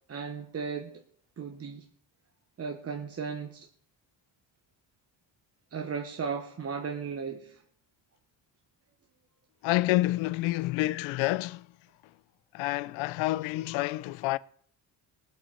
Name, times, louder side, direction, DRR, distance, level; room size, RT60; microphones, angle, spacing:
voice 1, 0.1-1.0 1.4-1.8 2.6-3.7 5.7-7.6, right 6 dB, 30° right, 1.0 m, -36 dB
voice 2, 9.6-11.7 12.5-14.4, left 18 dB, 85° left, 0.5 m, -28 dB
18.5 x 7.8 x 4.3 m
cardioid pair, 105°, 45 cm